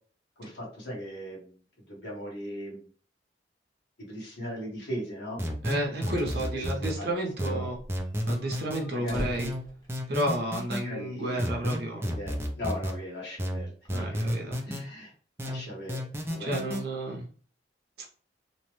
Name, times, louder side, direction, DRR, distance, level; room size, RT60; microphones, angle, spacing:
voice 1, 0.4-1.6 1.9-2.9 4.0-5.4 6.5-7.7 8.9-9.3 10.8-11.5 11.9-13.7 14.0-14.3 14.6-15.1 15.4-16.8, equal, 70° left, -3 dB, 1.2 m, -39 dB
sound 1, 5.4-7.0 7.4-8.8 9.4-10.8 11.4-13.0 13.4-14.8 15.4-16.8, equal, 15° right, 0.4 m, -32 dB
voice 2, 5.6-7.8 8.3-9.5 10.1-12.1 13.9-14.6 16.4-17.2, right 1 dB, 55° right, 0 dB, 0.6 m, -31 dB
sound 2, 5.9-6.4 6.7-6.8 7.0-7.1 7.6-10.6, left 1 dB, 20° left, 0.9 m, -40 dB
2.9 x 2.1 x 3.0 m, 0.44 s
head